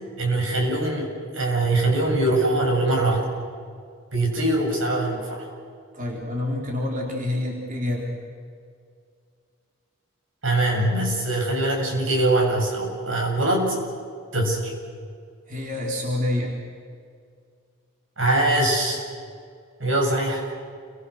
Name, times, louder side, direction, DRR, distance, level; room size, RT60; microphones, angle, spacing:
voice 1, 0.2-1.1 1.3-3.2 4.1-5.5 10.4-13.8 14.3-14.7 18.2-19.0 19.8-20.4, right 2 dB, 75° right, 0 dB, 7.6 m, -22 dB
voice 2, 5.9-8.1 15.5-16.6, left 1 dB, 40° right, -1 dB, 4.2 m, -27 dB
29.5 x 24.5 x 6.6 m, 2.2 s
head